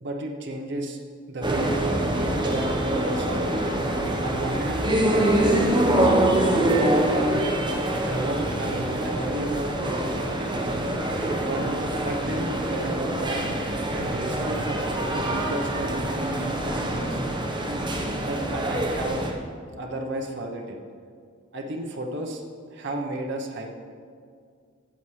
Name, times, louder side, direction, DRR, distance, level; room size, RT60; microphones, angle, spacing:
voice 1, 0.0-1.0 1.3-1.7 2.2-3.8 4.2-7.5 8.0-10.2 10.5-10.8 11.4-13.4 13.9-17.2 18.2-19.2 19.8-20.8 21.5-22.4 22.7-23.7, right 1 dB, 60° right, 1 dB, 0.9 m, -33 dB
sound 1, 1.4-19.3, right 1 dB, 25° right, 1.0 m, -25 dB
14.0 x 7.4 x 3.2 m, 2.2 s
head